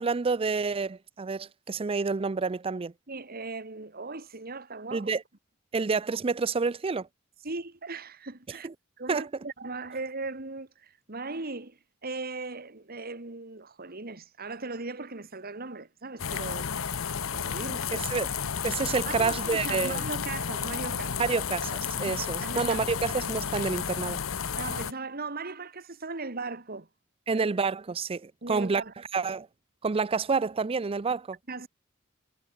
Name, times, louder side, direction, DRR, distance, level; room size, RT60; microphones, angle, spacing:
voice 1, 0.0-2.9 4.9-5.2 5.7-7.1 8.5-8.7 9.1-9.3 17.9-18.3 18.6-20.0 21.2-24.2 27.3-28.8 29.1-29.5 29.8-31.4, right 4 dB, 30° right, 0.4 m, -28 dB
voice 2, 3.1-5.1 7.4-8.7 9.0-16.7 17.3-17.9 19.1-21.3 22.1-22.8 24.5-26.9 27.3-27.5 28.4-28.9 31.5-31.7, right 3 dB, 50° right, 2.2 m, -38 dB
sound 1, 16.2-24.9, left 7 dB, 85° left, 0.9 m, -32 dB
head